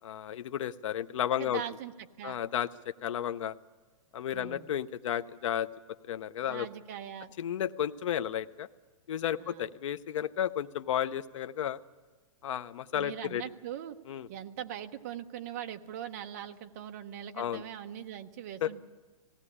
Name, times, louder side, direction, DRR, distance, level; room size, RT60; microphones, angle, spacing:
voice 1, 0.0-1.6 2.2-3.5 4.1-5.7 6.1-6.7 7.4-8.7 9.1-11.8 12.4-13.4 14.1-14.3 17.4-17.6 18.6-18.7, left 10 dB, 60° left, 11 dB, 0.6 m, -33 dB
voice 2, 1.4-2.4 4.3-4.7 6.5-7.3 9.4-9.7 12.9-14.0 14.3-18.8, right 10 dB, 25° right, 7 dB, 0.7 m, -41 dB
18.5 x 16.5 x 9.8 m, 1.3 s
hypercardioid pair, 180°, 18 cm